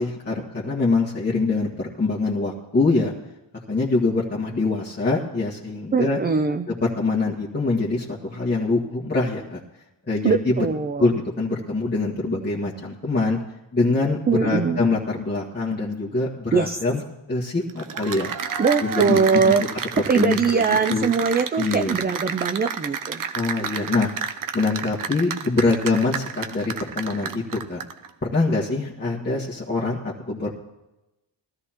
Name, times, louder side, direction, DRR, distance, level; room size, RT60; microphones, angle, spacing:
voice 1, 0.0-3.1 3.7-6.2 6.7-9.6 10.1-10.6 11.0-13.4 13.7-17.0 17.3-18.3 18.8-19.2 19.5-19.6 20.1-21.1 21.6-22.0 23.3-24.1 24.5-27.8 28.3-30.5, left 3 dB, 20° left, -7 dB, 1.7 m, -24 dB
voice 2, 5.9-6.7 10.2-11.1 14.3-14.8 16.5-16.8 18.6-19.6 20.1-23.2, right 5 dB, 20° right, 8 dB, 0.4 m, -21 dB
Cheering / Applause, 17.7-28.1, right 6 dB, 45° right, 0.7 m, -31 dB
20.0 x 13.5 x 3.0 m, 0.97 s
cardioid pair, 100°, 47 cm